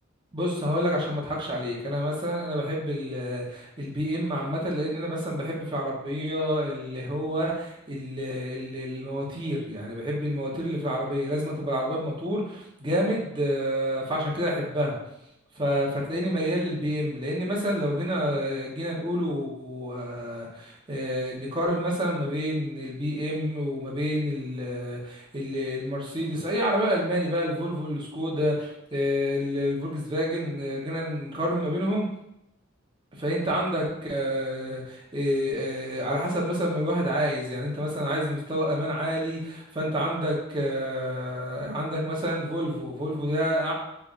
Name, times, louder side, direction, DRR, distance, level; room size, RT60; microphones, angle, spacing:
voice 1, 0.3-14.9 15.5-32.0 33.2-43.7, equal, 25° right, -4 dB, 0.8 m, -28 dB
3.7 x 3.3 x 2.4 m, 0.83 s
head